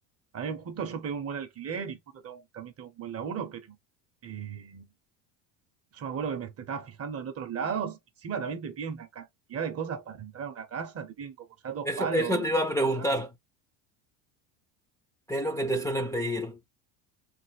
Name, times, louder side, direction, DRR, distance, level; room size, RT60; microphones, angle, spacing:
voice 1, 0.3-3.8 4.2-4.9 5.9-12.4 13.0-13.1, right 6 dB, 35° right, 0.7 m, -35 dB
voice 2, 11.8-13.3 15.3-16.6, equal, 5° left, 0.4 m, -28 dB
3.3 x 2.0 x 3.2 m
supercardioid pair, 110°, 45 cm